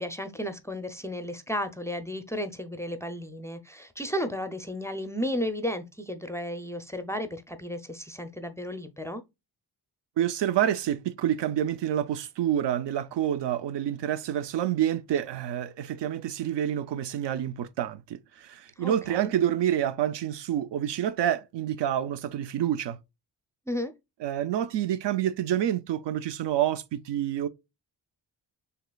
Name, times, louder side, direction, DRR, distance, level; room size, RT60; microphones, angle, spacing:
voice 1, 0.0-9.2 18.8-19.3 23.7-23.9, equal, 5° left, 0.4 m, -33 dB
voice 2, 10.2-23.0 24.2-27.5, right 11 dB, 80° right, 0.6 m, -28 dB
6.4 x 3.0 x 2.2 m
wide cardioid pair, 125°, 41 cm